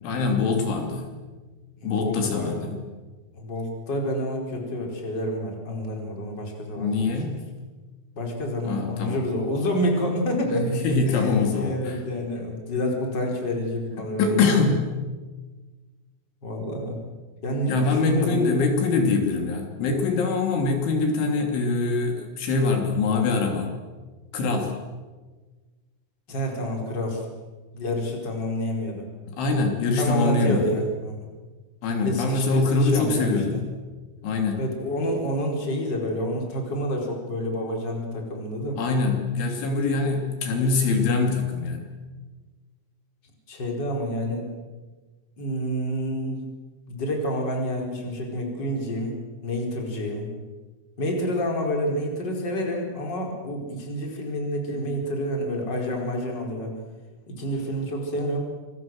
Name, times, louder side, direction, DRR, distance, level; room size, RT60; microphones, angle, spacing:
voice 1, 0.0-1.1 1.8-2.8 6.8-7.4 8.7-9.2 10.5-12.0 14.2-14.9 17.7-23.7 24.3-24.7 29.3-30.7 31.8-33.6 34.2-34.6 38.8-42.0, left 4 dB, 75° left, 3 dB, 5.2 m, -24 dB
voice 2, 1.8-2.7 3.3-7.1 8.2-14.7 16.4-17.0 17.4-18.5 26.3-27.3 27.7-29.0 29.8-31.3 32.0-33.4 34.6-38.8 43.5-44.5 45.4-46.4 46.9-49.2 49.4-50.3 51.0-56.7 57.3-58.4, equal, 20° left, 1 dB, 4.8 m, -28 dB
27.0 x 22.5 x 7.8 m, 1.3 s
omnidirectional pair, 5.6 m